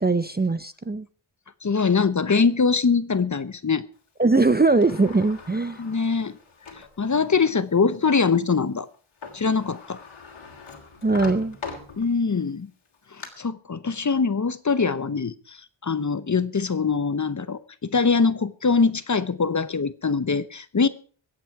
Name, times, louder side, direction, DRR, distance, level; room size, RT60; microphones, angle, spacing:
voice 1, 0.0-1.1 4.2-5.8 11.0-11.6, right 3 dB, 20° right, 13 dB, 0.6 m, -21 dB
voice 2, 1.6-3.9 5.8-6.4 6.7-8.9 9.3-10.0 12.0-12.7 13.1-20.9, left 5 dB, 35° left, 15 dB, 0.8 m, -23 dB
Sliding door, 4.3-7.0 7.5-7.6 8.9-9.0 9.2-12.4 12.9-13.3, left 4 dB, 70° left, 3.2 m, -41 dB
23.0 x 8.5 x 4.7 m, 0.41 s
wide cardioid pair, 125°, 49 cm